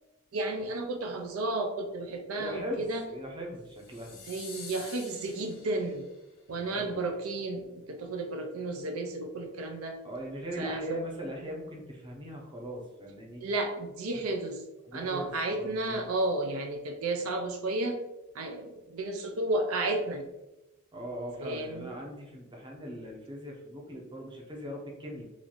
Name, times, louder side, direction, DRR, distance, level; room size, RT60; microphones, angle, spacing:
voice 1, 0.3-3.0 4.3-6.0 6.5-10.0 10.6-10.8 13.4-14.6 14.9-18.0 18.3-20.2 21.4-21.9, right 2 dB, 75° right, 4 dB, 0.5 m, -32 dB
voice 2, 2.4-4.2 6.7-7.1 10.0-13.5 14.9-16.0 20.9-25.2, equal, 20° right, -1 dB, 0.7 m, -40 dB
sound 1, 3.7-6.2, left 5 dB, 65° left, 0.8 m, -47 dB
3.1 x 2.5 x 3.9 m, 0.98 s
head